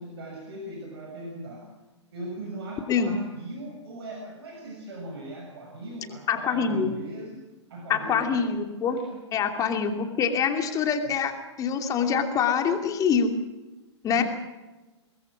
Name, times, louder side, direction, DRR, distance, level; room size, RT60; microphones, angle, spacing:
voice 1, 0.0-1.7 2.1-8.5 8.9-9.2 14.1-14.2, right 1 dB, 55° right, 1 dB, 6.7 m, -39 dB
voice 2, 6.3-6.9 7.9-9.0 9.3-11.3 11.6-13.3 14.0-14.2, left 6 dB, 20° left, 5 dB, 2.7 m, -25 dB
25.0 x 21.0 x 6.2 m, 1.1 s
figure-of-eight pair, 110°, 15 cm